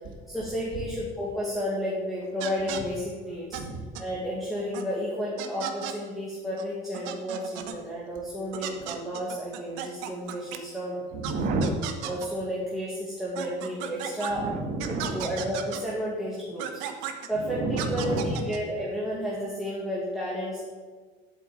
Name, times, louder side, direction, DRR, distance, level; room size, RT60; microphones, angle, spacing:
voice 1, 0.3-3.6 4.0-11.0 12.0-14.4 14.9-16.8 17.3-20.6, equal, ahead, -6 dB, 1.9 m, -32 dB
sound 1, 2.4-2.8 3.5-3.6 4.0-4.1 4.7-4.9 5.4-6.0 6.6-6.7 6.9-7.8 8.5-10.6 11.2-11.3 11.6-12.3 13.4-14.3 14.8-15.8 16.6-17.3 17.8-18.6, right 10 dB, 85° right, 1.3 m, -35 dB
voice 2, 3.5-3.9 11.1-11.7 14.3-15.3 17.4-18.5, right 2 dB, 50° right, 2 dB, 1.8 m, -30 dB
8.5 x 7.7 x 8.8 m, 1.5 s
cardioid pair, 165°, 18 cm